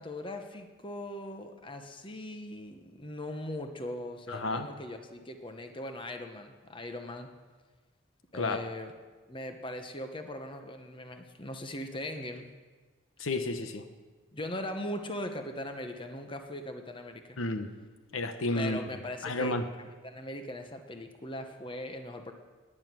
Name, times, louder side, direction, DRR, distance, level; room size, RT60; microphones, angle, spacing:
voice 1, 0.0-7.3 8.3-8.9 9.3-12.5 14.3-17.4 18.6-22.3, left 1 dB, 25° left, 6 dB, 1.0 m, -40 dB
voice 2, 4.3-4.7 8.3-8.6 13.2-13.8 17.4-17.7 18.1-18.8 19.2-19.7, left 2 dB, 80° left, 8 dB, 1.0 m, -31 dB
17.5 x 9.9 x 6.1 m, 1.4 s
head